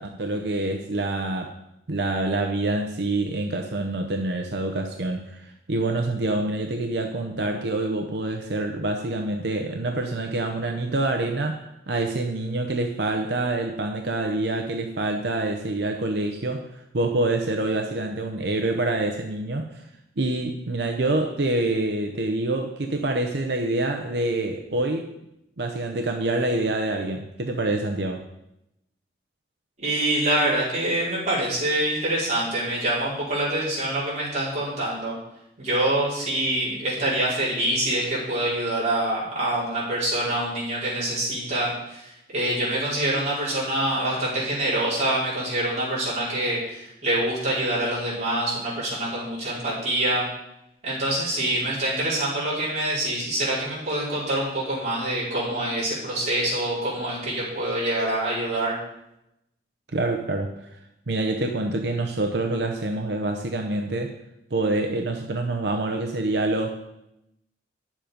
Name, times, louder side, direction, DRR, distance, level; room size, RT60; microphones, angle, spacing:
voice 1, 0.1-1.5 1.9-19.8 20.2-25.1 25.6-28.3 59.9-60.8 61.1-64.1 64.5-66.8, right 2 dB, 65° right, 4 dB, 0.8 m, -26 dB
voice 2, 29.8-35.2 35.6-50.3 50.8-58.8, right 1 dB, 40° right, -8 dB, 4.7 m, -25 dB
10.5 x 7.4 x 5.2 m, 0.84 s
head